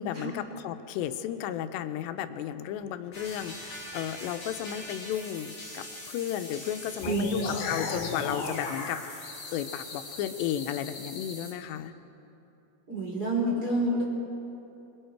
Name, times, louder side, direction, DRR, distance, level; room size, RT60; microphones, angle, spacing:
voice 1, 0.0-11.9, left 10 dB, 90° left, 9 dB, 2.9 m, -34 dB
sound 1, 3.1-11.5, left 1 dB, 35° left, 5.7 m, -43 dB
sound 2, 7.0-11.4, left 4 dB, 65° left, 3.9 m, -37 dB
voice 2, 12.9-14.0, right 1 dB, 20° right, -4 dB, 4.5 m, -28 dB
24.5 x 23.0 x 4.6 m, 2.9 s
omnidirectional pair, 4.9 m